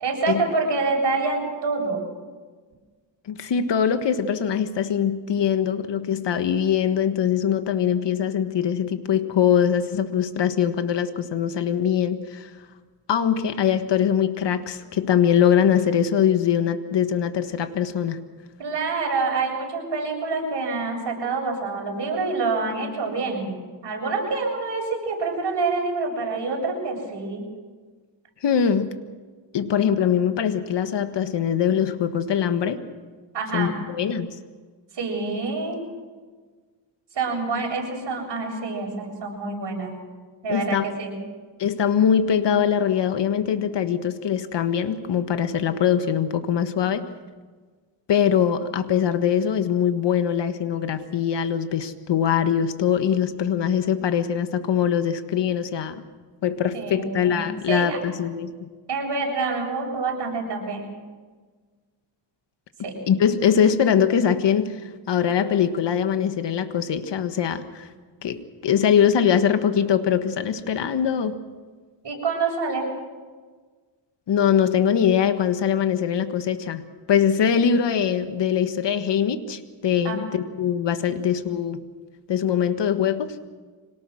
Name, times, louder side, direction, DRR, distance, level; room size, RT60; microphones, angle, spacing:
voice 1, 0.0-2.0 18.6-23.6 23.8-27.4 33.3-33.7 34.9-35.8 37.1-39.9 40.4-41.1 56.7-58.0 58.9-60.9 62.8-62.9 72.0-72.9 80.0-80.2, right 4 dB, 60° right, 0 dB, 7.8 m, -27 dB
voice 2, 3.3-12.5 13.1-18.2 28.4-29.0 29.5-32.8 33.5-34.4 40.5-40.9 41.6-47.1 48.1-56.0 56.4-58.7 63.1-67.9 68.2-71.4 74.3-81.8 82.3-83.4, left 8 dB, 65° left, 9 dB, 1.6 m, -22 dB
25.5 x 18.5 x 6.4 m, 1.4 s
cardioid pair, 90°, 46 cm